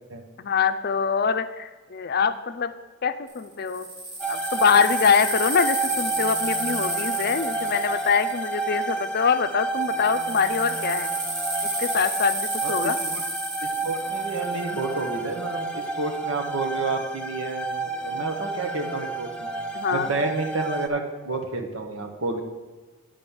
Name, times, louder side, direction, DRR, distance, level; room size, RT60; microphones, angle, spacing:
voice 1, 0.4-2.7 3.0-3.9 4.3-11.1 11.8-13.0 19.7-20.1, left 6 dB, 50° left, 10 dB, 0.5 m, -24 dB
sound 1, 3.3-9.2 9.7-15.1, right 2 dB, 60° right, 2.4 m, -32 dB
sound 2, 4.2-20.9, right 3 dB, 5° left, 0.6 m, -30 dB
voice 2, 12.6-13.2 13.6-19.5 19.9-22.4, right 3 dB, 80° right, 3 dB, 1.2 m, -30 dB
9.2 x 5.3 x 7.0 m, 1.3 s
head